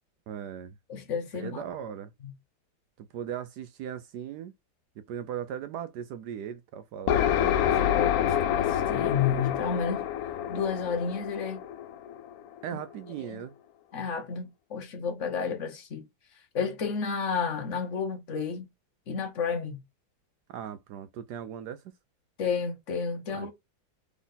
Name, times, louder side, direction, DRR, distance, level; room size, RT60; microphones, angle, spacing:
voice 1, 0.3-0.8 1.3-2.1 3.0-4.5 5.0-7.3 12.6-13.5 20.5-21.8 23.3-23.5, right 9 dB, 75° right, 1.0 m, -38 dB
voice 2, 0.9-1.6 2.2-2.3 7.6-10.1 10.5-11.6 13.3-13.4 13.9-16.1 16.5-18.7 19.1-19.8 22.4-23.5, left 6 dB, 50° left, 0.9 m, -31 dB
sound 1, 7.1-12.7, left 10 dB, 80° left, 0.8 m, -27 dB
4.0 x 3.5 x 3.8 m
omnidirectional pair, 2.1 m